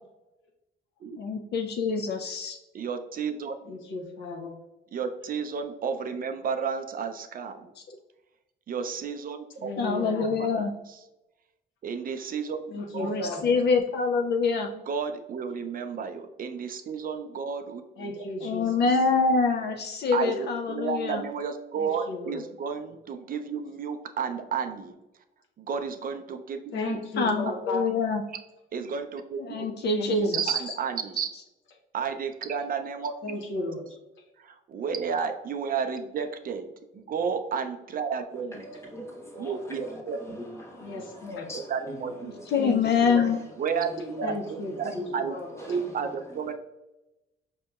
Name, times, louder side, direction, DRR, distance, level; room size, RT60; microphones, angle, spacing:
voice 1, 1.2-2.6 9.8-10.7 13.0-14.7 18.4-21.2 27.2-28.2 29.4-30.7 42.5-43.4, left 4 dB, 60° left, 0.4 m, -25 dB
voice 2, 2.7-3.6 4.9-7.7 8.7-9.7 10.4-10.7 11.8-12.6 12.9-13.3 14.7-18.2 20.1-25.0 25.6-27.0 28.7-29.7 30.2-31.3 31.9-33.4 34.4-36.7 36.9-38.5 39.4-40.2 41.7-42.1 43.6-45.3 45.7-46.5, right 6 dB, 45° right, 0.4 m, -32 dB
voice 3, 3.7-4.5 9.6-10.4 12.7-13.5 18.0-18.7 21.7-22.4 26.7-27.8 29.9-30.4 33.2-33.8 40.8-41.5 42.6-43.3 44.2-45.0 45.3-45.6, left 2 dB, 75° left, 0.8 m, -35 dB
voice 4, 38.3-46.5, equal, 15° left, 1.1 m, -42 dB
5.1 x 2.8 x 2.3 m
cardioid pair, 90°, 20 cm